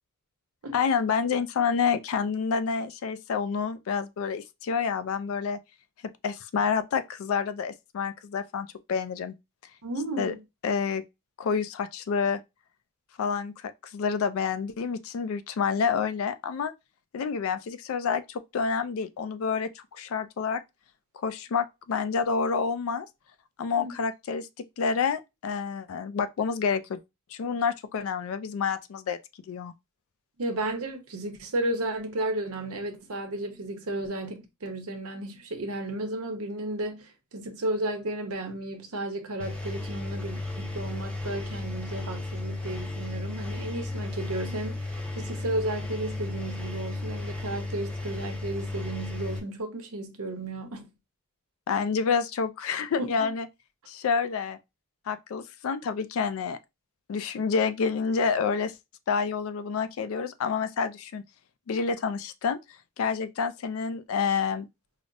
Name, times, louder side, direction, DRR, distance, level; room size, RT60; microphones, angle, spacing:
voice 1, 0.7-5.6 6.2-9.3 10.2-10.3 10.6-11.0 11.4-12.4 13.2-16.7 17.1-20.6 21.1-23.1 23.6-24.5 24.8-27.0 27.3-29.2 29.5-29.7 51.7-53.5 53.9-54.6 55.1-56.6 57.1-58.7 59.1-61.2 61.7-62.6 63.0-64.7, left 6 dB, 70° left, 0.3 m, -28 dB
voice 2, 9.8-10.4 23.8-24.0 30.4-50.9 53.0-53.3, right 1 dB, 85° right, 0.8 m, -33 dB
Engine, 39.4-49.4, left 2 dB, 5° left, 0.5 m, -34 dB
4.8 x 2.0 x 2.5 m
head